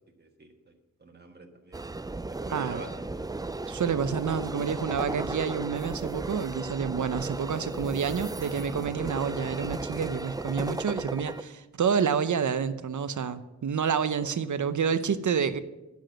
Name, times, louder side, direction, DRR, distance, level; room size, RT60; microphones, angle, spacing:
voice 1, 0.2-1.9 2.4-3.3 14.2-14.3, right 2 dB, 35° right, 2 dB, 1.5 m, -46 dB
sound 1, 1.7-11.4, right 2 dB, 15° right, 0.3 m, -35 dB
voice 2, 3.7-15.6, right 6 dB, 80° right, 12 dB, 0.7 m, -28 dB
11.0 x 7.2 x 7.7 m, 1.0 s
wide cardioid pair, 100°, 30 cm